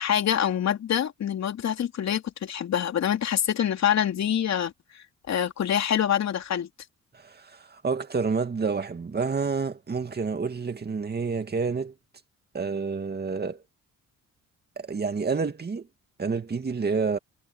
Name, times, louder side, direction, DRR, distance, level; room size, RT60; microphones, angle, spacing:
voice 1, 0.0-4.7 5.3-6.7, left 9 dB, 60° left, 3.4 m, -25 dB
voice 2, 7.1-11.9 12.5-13.6 14.8-15.9 16.2-17.2, right 5 dB, 35° right, 2.4 m, -29 dB
cardioid pair, 90°, 30 cm